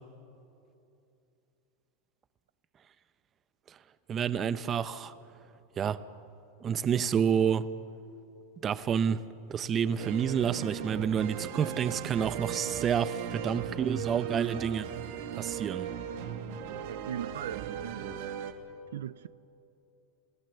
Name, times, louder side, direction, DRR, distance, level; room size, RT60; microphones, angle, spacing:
voice 1, 4.1-5.1 5.8-6.0 6.6-7.7 8.6-9.2 9.5-14.9 15.4-15.9, right 8 dB, 30° right, 14 dB, 0.8 m, -29 dB
sound 1, 10.0-18.5, right 8 dB, 65° right, 1.9 m, -38 dB
voice 2, 16.9-18.1 18.9-19.3, right 10 dB, 85° right, 17 dB, 0.4 m, -39 dB
28.5 x 16.5 x 7.0 m, 2.8 s
supercardioid pair, 125°, 0 cm